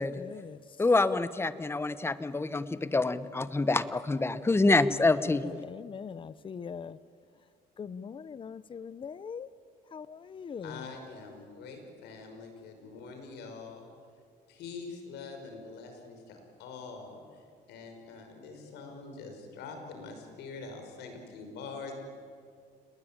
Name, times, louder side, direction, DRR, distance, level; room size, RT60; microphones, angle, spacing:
voice 1, 0.0-0.6 5.2-7.0 7.8-9.5 9.9-10.9, left 6 dB, 30° left, 0.7 m, -42 dB
voice 2, 0.8-5.4, left 3 dB, 15° left, 1.1 m, -26 dB
voice 3, 10.6-13.9 14.5-21.9, left 4 dB, 85° left, 5.7 m, -44 dB
29.0 x 20.5 x 9.0 m
cardioid pair, 110°, 17 cm